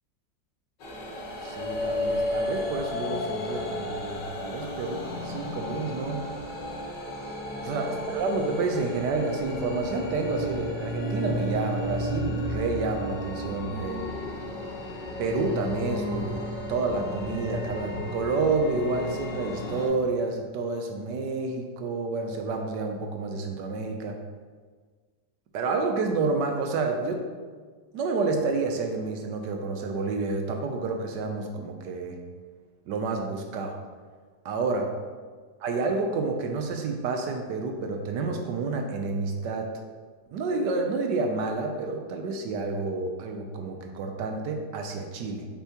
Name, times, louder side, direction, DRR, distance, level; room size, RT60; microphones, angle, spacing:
sound 1, 0.8-19.9, left 1 dB, 80° left, 1.9 m, -33 dB
voice 1, 1.4-6.2 7.6-7.9 8.1-14.1 15.2-24.2 25.5-27.2 27.9-32.2 32.9-33.8 34.4-34.9 35.6-39.7 40.3-45.5, right 3 dB, 75° right, 3 dB, 1.3 m, -29 dB
7.0 x 5.6 x 2.9 m, 1.5 s
omnidirectional pair, 1.9 m